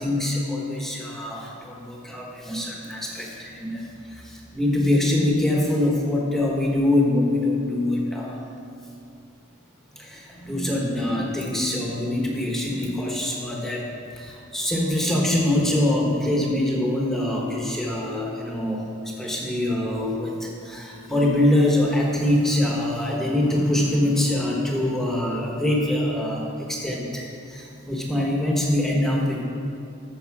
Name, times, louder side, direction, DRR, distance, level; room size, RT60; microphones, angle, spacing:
voice 1, 0.0-8.4 10.0-13.9 14.1-29.4, left 1 dB, ahead, -2 dB, 1.0 m, -24 dB
14.5 x 5.5 x 4.7 m, 2.5 s
head